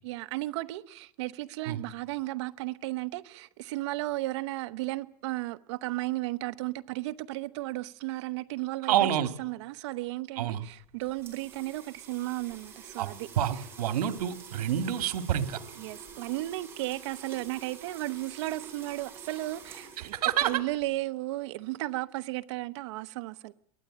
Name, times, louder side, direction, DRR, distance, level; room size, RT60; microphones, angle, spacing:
voice 1, 0.0-13.3 13.5-13.6 15.8-20.2 20.4-23.5, right 18 dB, 50° right, 1.1 m, -34 dB
voice 2, 8.9-9.3 10.4-10.6 13.0-15.6 20.0-20.5, right 10 dB, 85° right, 2.2 m, -28 dB
sound 1, 10.7-21.0, right 5 dB, 10° right, 4.6 m, -48 dB
23.0 x 18.0 x 8.8 m
supercardioid pair, 175°, 19 cm